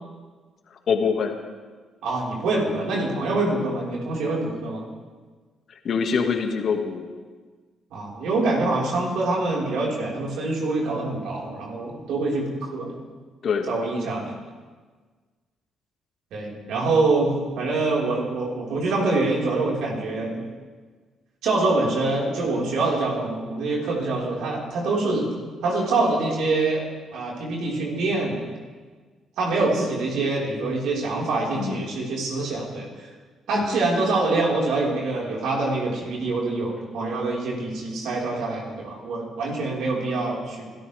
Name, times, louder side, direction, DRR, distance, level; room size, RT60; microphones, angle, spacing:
voice 1, 0.9-1.3 5.8-7.1 13.4-13.7 31.5-31.8 33.5-33.8, left 6 dB, 60° left, 4 dB, 2.0 m, -24 dB
voice 2, 2.0-4.9 7.9-12.9 13.7-14.3 16.3-20.4 21.4-25.3 25.6-26.8 27.1-28.5 29.4-32.9 33.5-40.6, right 2 dB, 75° right, -3 dB, 4.9 m, -25 dB
26.0 x 13.0 x 3.6 m, 1.4 s
supercardioid pair, 60°, 0 cm